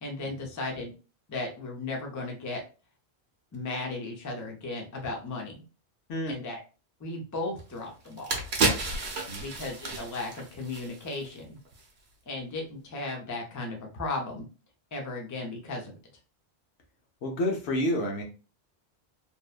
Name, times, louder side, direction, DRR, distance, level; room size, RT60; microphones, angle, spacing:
voice 1, 0.0-0.9 1.3-2.6 3.5-5.6 6.3-6.6 7.0-8.4 9.4-11.6 12.3-14.5 14.9-16.0, left 2 dB, 25° left, 1 dB, 0.4 m, -35 dB
sound 1, 7.6-7.7 8.1-11.3 11.7-11.8, right 3 dB, 65° right, 0.9 m, -31 dB
voice 2, 17.2-18.2, left 1 dB, 75° left, 2 dB, 1.0 m, -29 dB
2.8 x 2.1 x 2.3 m, 0.34 s
omnidirectional pair, 1.1 m